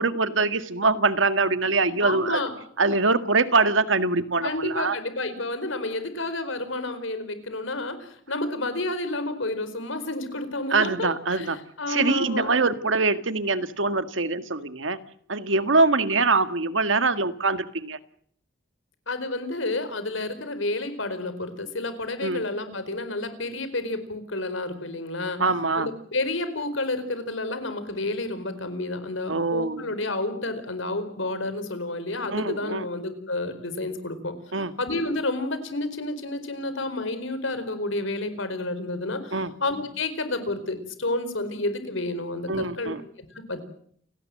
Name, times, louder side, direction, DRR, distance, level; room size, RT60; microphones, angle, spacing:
voice 1, 0.0-2.4 2.8-5.0 10.7-11.6 11.9-15.0 15.3-18.0 22.2-22.4 25.4-25.9 29.3-29.9 32.3-32.9 34.5-34.7 39.3-39.5 42.5-43.0, right 3 dB, 80° right, 11 dB, 1.8 m, -23 dB
voice 2, 2.0-2.5 4.4-12.5 19.1-25.4 25.8-42.9 43.3-43.6, left 2 dB, 85° left, 11 dB, 4.5 m, -30 dB
29.5 x 18.0 x 7.8 m, 0.64 s
head